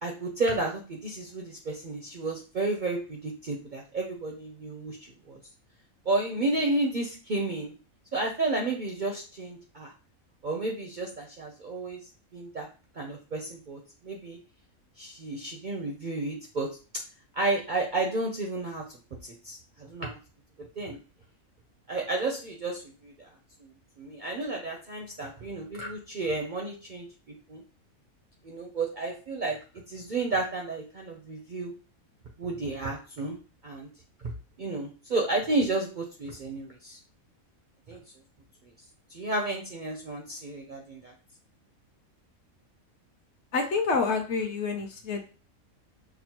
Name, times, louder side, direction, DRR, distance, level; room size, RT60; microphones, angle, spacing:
voice 1, 0.0-5.0 5.3-5.4 6.1-7.7 8.1-9.9 10.4-12.0 12.3-12.7 13.0-14.4 15.0-16.7 17.3-20.2 20.8-21.0 21.9-23.3 23.6-23.7 24.0-27.1 27.5-27.6 28.4-29.6 29.9-31.7 32.4-33.4 33.6-33.9 34.6-37.0 37.9-38.0 39.1-41.1, right 2 dB, 55° right, 0 dB, 0.5 m, -32 dB
voice 2, 43.5-45.3, left 4 dB, 60° left, 3 dB, 0.8 m, -28 dB
6.0 x 2.0 x 2.9 m, 0.35 s
omnidirectional pair, 1.5 m